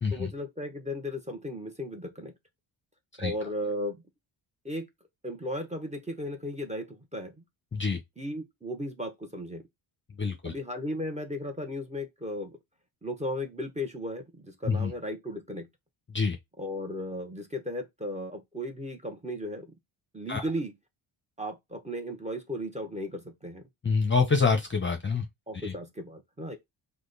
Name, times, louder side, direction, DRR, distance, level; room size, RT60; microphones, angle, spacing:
voice 1, 0.1-2.3 3.2-4.0 4.6-4.9 5.2-7.4 8.2-9.6 10.4-12.6 13.0-15.7 16.6-19.7 20.1-20.7 21.4-23.6 25.5-26.6, equal, 15° right, 1.0 m, -35 dB
voice 2, 10.2-10.5 14.7-14.9 16.1-16.4 20.3-20.4 23.8-25.3 25.6-25.7, left 4 dB, 25° left, 0.7 m, -26 dB
4.9 x 2.3 x 3.9 m
cardioid pair, 105°, 48 cm